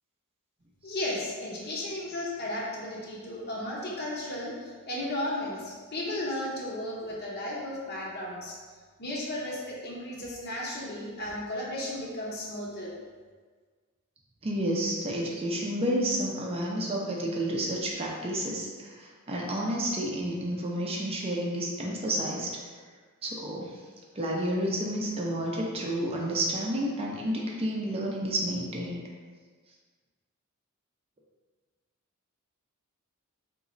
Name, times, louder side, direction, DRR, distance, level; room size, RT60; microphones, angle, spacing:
voice 1, 0.8-8.6 9.0-12.9, left 1 dB, 50° left, -4 dB, 0.8 m, -34 dB
voice 2, 14.4-22.5 23.2-23.8 24.2-29.0, right 1 dB, 30° right, -2 dB, 0.5 m, -30 dB
3.9 x 3.0 x 2.5 m, 1.5 s
head